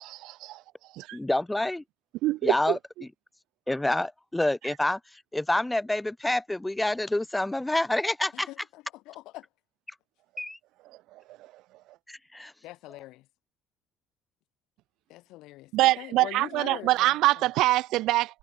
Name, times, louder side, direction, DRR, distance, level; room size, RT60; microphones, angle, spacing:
voice 1, 0.2-0.6 0.9-1.2 2.2-2.8 15.7-18.4, right 17 dB, 65° right, 1.1 m, -24 dB
voice 2, 1.1-1.8 2.4-2.8 3.7-8.5 10.4-10.6 12.1-12.5, left 1 dB, 5° left, 0.4 m, -27 dB
voice 3, 8.3-9.5 12.6-13.3 15.1-17.4, left 18 dB, 70° left, 3.5 m, -43 dB
cardioid pair, 160°, 0 cm